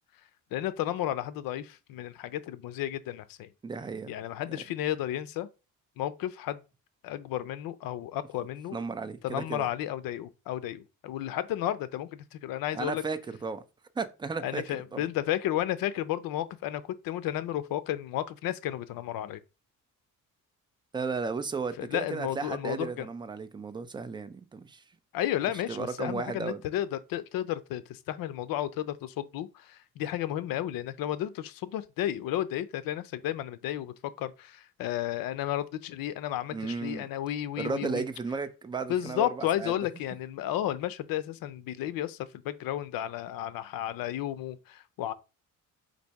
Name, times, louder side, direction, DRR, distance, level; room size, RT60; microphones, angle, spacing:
voice 1, 0.5-3.5 4.1-5.5 6.0-6.6 7.0-8.8 9.2-13.0 14.4-19.4 21.8-23.1 25.1-38.0 38.9-45.1, left 12 dB, 90° left, 0.5 m, -33 dB
voice 2, 3.6-4.1 4.5-4.6 8.7-9.7 12.7-13.6 14.0-15.0 20.9-24.8 25.7-26.6 36.5-37.1 37.6-39.7, right 4 dB, 15° right, 0.4 m, -34 dB
4.1 x 2.6 x 4.6 m
cardioid pair, 120°, 33 cm